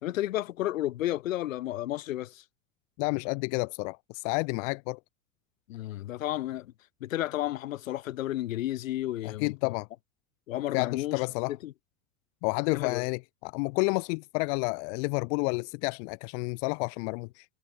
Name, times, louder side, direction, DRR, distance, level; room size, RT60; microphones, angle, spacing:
voice 1, 0.0-2.4 5.7-6.7 7.0-9.7 10.5-11.7 12.7-13.0, left 14 dB, 80° left, 3.3 m, -32 dB
voice 2, 3.0-5.0 9.2-9.9 10.7-11.5 12.4-17.4, left 33 dB, 65° left, 2.6 m, -30 dB
hypercardioid pair, 90°, 39 cm